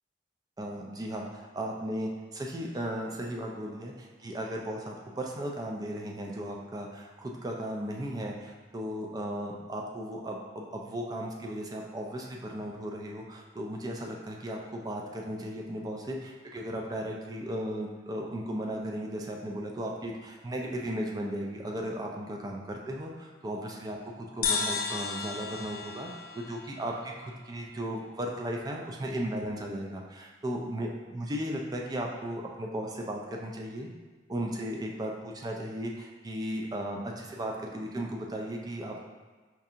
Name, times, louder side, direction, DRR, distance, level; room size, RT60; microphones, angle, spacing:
voice 1, 0.6-33.9 34.3-39.0, right 1 dB, 20° right, 0 dB, 0.4 m, -36 dB
sound 1, 24.4-27.9, left 5 dB, 55° left, 0.3 m, -34 dB
4.5 x 2.4 x 2.7 m, 1.4 s
head